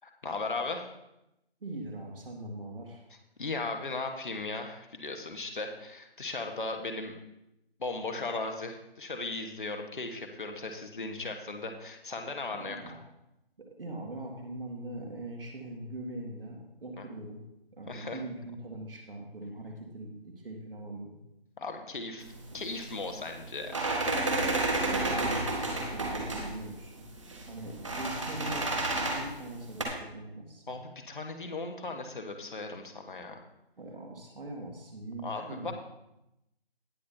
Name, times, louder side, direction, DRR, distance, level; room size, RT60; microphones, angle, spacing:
voice 1, 0.0-0.9 3.4-7.1 7.8-12.8 17.0-17.1 17.9-18.2 21.6-22.3 22.5-23.8 28.4-28.5 30.7-33.4 35.2-35.7, left 3 dB, 50° left, 4 dB, 1.3 m, -37 dB
voice 2, 1.6-3.0 12.5-13.0 13.6-17.4 17.7-21.2 24.7-27.1 27.4-30.6 33.8-35.7, right 1 dB, 60° right, 0 dB, 2.0 m, -41 dB
sound 1, 22.2-29.8, right 2 dB, 30° right, 1.3 m, -32 dB
18.0 x 6.2 x 2.7 m, 0.89 s
figure-of-eight pair, 170°, 31 cm